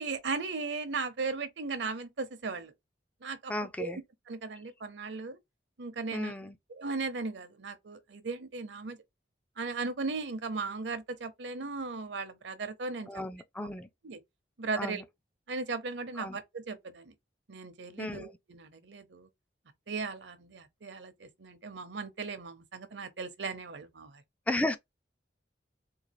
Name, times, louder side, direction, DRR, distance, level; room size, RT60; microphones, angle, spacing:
voice 1, 0.0-2.7 3.2-3.5 3.8-4.0 4.3-5.4 5.8-6.3 6.7-9.0 9.6-13.1 14.0-14.2 14.6-15.0 15.5-17.1 17.5-19.3 19.9-24.2, right 4 dB, 70° right, 0.7 m, -37 dB
voice 2, 3.5-4.0 6.1-6.6 13.1-13.9 14.8-15.0 16.2-16.4 18.0-18.3 24.5-24.8, left 1 dB, 10° left, 0.3 m, -34 dB
3.8 x 2.4 x 3.0 m
head